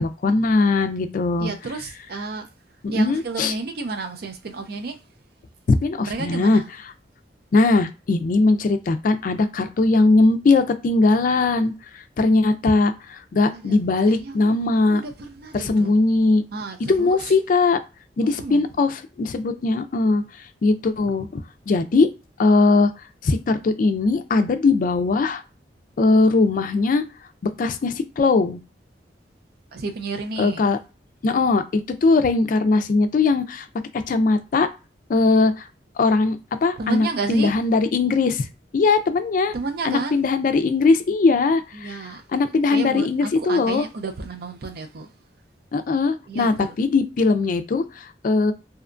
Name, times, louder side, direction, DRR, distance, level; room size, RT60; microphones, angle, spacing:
voice 1, 0.0-1.5 2.8-3.5 5.7-6.6 7.5-11.7 12.2-15.0 15.5-16.4 16.9-17.8 18.2-18.9 19.2-20.2 20.6-21.4 21.7-22.1 22.4-22.9 23.2-25.4 26.0-27.0 27.6-28.6 30.4-30.8 31.2-33.7 34.1-34.7 35.1-35.7 36.0-38.5 38.7-39.5 39.8-42.0 42.3-43.9 45.7-48.5, left 3 dB, 50° left, 0.3 m, -20 dB
voice 2, 1.4-2.5 2.9-5.0 6.1-6.7 13.5-13.8 14.0-14.5 14.9-15.9 16.5-17.3 18.2-18.6 29.7-30.7 36.8-37.6 39.5-40.2 41.7-42.2 42.7-45.1 46.3-46.7, right 3 dB, 60° right, 0.5 m, -31 dB
2.7 x 2.2 x 2.5 m
head